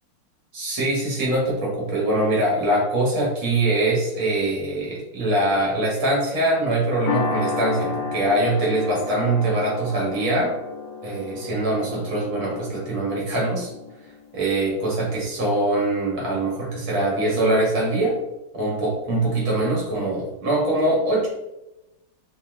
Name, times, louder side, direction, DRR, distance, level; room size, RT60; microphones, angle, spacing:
voice 1, 0.5-10.5 11.0-13.7 14.3-18.2 18.5-21.3, right 1 dB, 70° right, -3 dB, 2.4 m, -23 dB
sound 1, 7.1-15.6, left 5 dB, 65° left, 1.1 m, -32 dB
5.5 x 2.5 x 3.7 m, 0.95 s
omnidirectional pair, 2.3 m